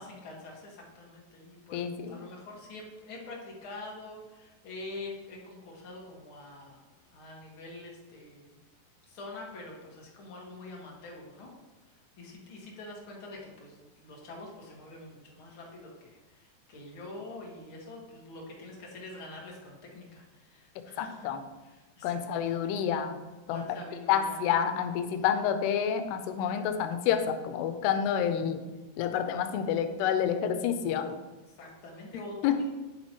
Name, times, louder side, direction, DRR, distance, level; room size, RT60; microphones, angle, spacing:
voice 1, 0.0-6.8 7.1-8.6 9.1-11.5 11.9-21.3 21.7-22.6 23.5-24.4 31.5-32.6, left 2 dB, 55° left, -2 dB, 1.5 m, -45 dB
voice 2, 1.7-2.2 21.0-21.4 22.0-23.2 23.5-23.7 24.1-28.6 29.0-31.2 32.4-32.6, left 8 dB, 90° left, 9 dB, 2.7 m, -28 dB
9.7 x 7.5 x 3.0 m, 1.1 s
omnidirectional pair, 4.7 m